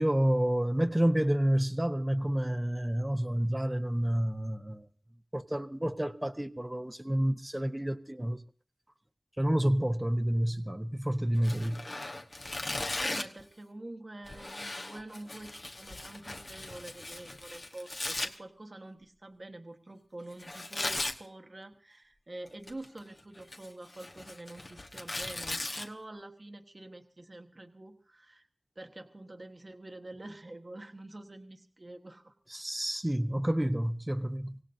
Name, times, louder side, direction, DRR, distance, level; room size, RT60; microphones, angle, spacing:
voice 1, 0.0-4.9 5.3-8.4 9.4-11.8 32.5-34.6, right 1 dB, 20° right, 0.9 m, -29 dB
Tearing, 11.4-13.4 14.2-18.3 20.4-21.2 22.5-23.0 23.4-25.8, left 2 dB, 55° left, 1.2 m, -38 dB
voice 2, 13.0-28.5 28.7-32.3, right 2 dB, 45° right, 1.3 m, -47 dB
25.0 x 17.0 x 2.7 m
wide cardioid pair, 45°, 0 cm